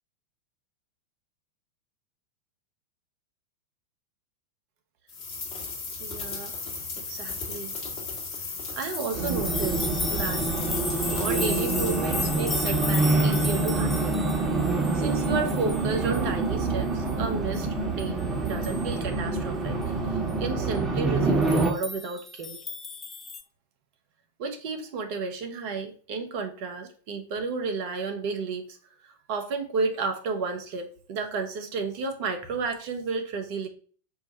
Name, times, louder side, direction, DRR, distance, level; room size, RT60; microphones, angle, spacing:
sound 1, 5.1-12.0, left 4 dB, 40° left, 1.1 m, -36 dB
voice 1, 6.0-6.5 7.0-7.7 8.8-10.5 11.1-14.5 14.9-19.8 20.4-22.6 24.4-28.8 29.3-33.7, right 4 dB, 45° right, 5 dB, 0.8 m, -32 dB
sound 2, 9.0-16.3 16.6-16.7 17.1-17.2 17.5-17.6 18.0-18.1 18.4-19.0 21.4-23.4, left 3 dB, 15° left, 0.5 m, -35 dB
Race car auto racing, 9.1-21.7, right 3 dB, 20° right, 1.0 m, -26 dB
4.6 x 2.2 x 4.3 m, 0.43 s
figure-of-eight pair, 90°, 0 cm